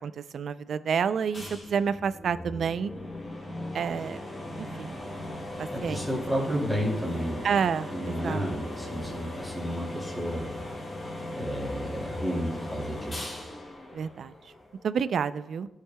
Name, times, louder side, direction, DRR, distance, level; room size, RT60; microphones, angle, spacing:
voice 1, 0.0-2.9 3.7-4.2 4.6-4.9 5.6-6.0 7.4-8.4 13.9-14.3 14.8-15.7, right 6 dB, 75° right, 14 dB, 0.4 m, -29 dB
sound 1, 1.3-14.8, left 1 dB, 40° left, 2.4 m, -38 dB
voice 2, 5.7-7.5 7.9-10.5 11.3-13.3, equal, 5° left, -4 dB, 2.5 m, -32 dB
18.5 x 6.5 x 2.2 m, 1.0 s
cardioid pair, 95°, 0 cm